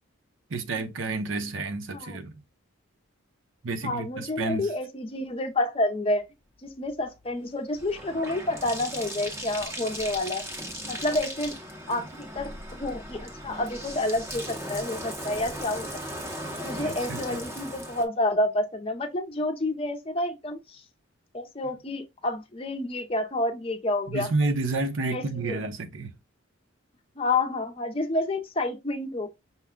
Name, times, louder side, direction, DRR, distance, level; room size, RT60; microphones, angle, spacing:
voice 1, 0.5-2.3 3.6-4.7 11.9-12.0 16.7-17.4 24.1-26.1, right 3 dB, 65° right, 0.8 m, -30 dB
voice 2, 3.8-6.2 6.6-10.4 10.8-11.5 11.9-15.9 16.6-20.8 21.3-24.3 25.1-25.6 27.2-29.3, left 2 dB, 25° left, 0.6 m, -29 dB
Bathtub (filling or washing), 6.7-18.0, equal, 10° right, 0.7 m, -37 dB
5.7 x 2.2 x 3.6 m
head